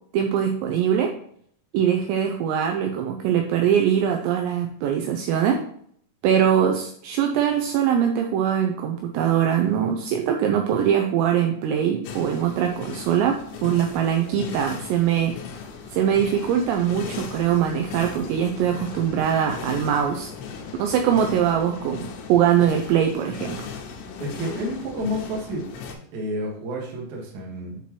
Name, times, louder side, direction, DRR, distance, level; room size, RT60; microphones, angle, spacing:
voice 1, 0.1-1.1 1.7-5.6 6.2-15.4 15.9-20.3 20.8-23.7, right 9 dB, 85° right, 3 dB, 2.6 m, -22 dB
sound 1, 12.0-25.9, left 5 dB, 85° left, 3.1 m, -37 dB
voice 2, 24.2-25.7 26.1-27.8, equal, 60° right, -2 dB, 2.2 m, -30 dB
8.3 x 4.3 x 3.0 m, 0.64 s
omnidirectional pair, 5.5 m